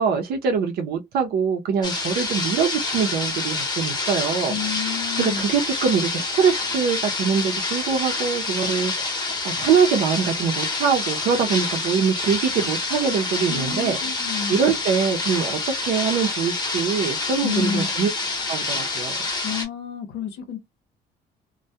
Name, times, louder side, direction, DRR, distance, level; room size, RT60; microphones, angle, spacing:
voice 1, 0.0-4.8 5.2-9.0 9.4-14.0 14.5-18.1 18.5-19.1, right 6 dB, 65° right, 0.6 m, -23 dB
sound 1, 1.8-19.7, left 3 dB, 25° left, 0.9 m, -27 dB
voice 2, 4.5-5.4 13.5-14.6 17.4-17.9 19.4-20.6, left 7 dB, 80° left, 0.8 m, -29 dB
2.2 x 2.2 x 2.7 m
cardioid pair, 110°, 17 cm